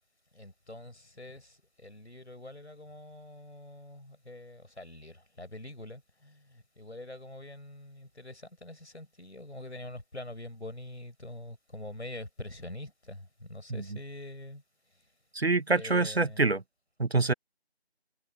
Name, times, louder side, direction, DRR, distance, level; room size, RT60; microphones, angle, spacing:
voice 1, 0.3-14.6 15.7-16.5, left 1 dB, 80° left, 5.9 m, -45 dB
voice 2, 15.3-16.6 17.0-17.3, right 3 dB, 65° right, 1.3 m, -26 dB
figure-of-eight pair, 170°, 33 cm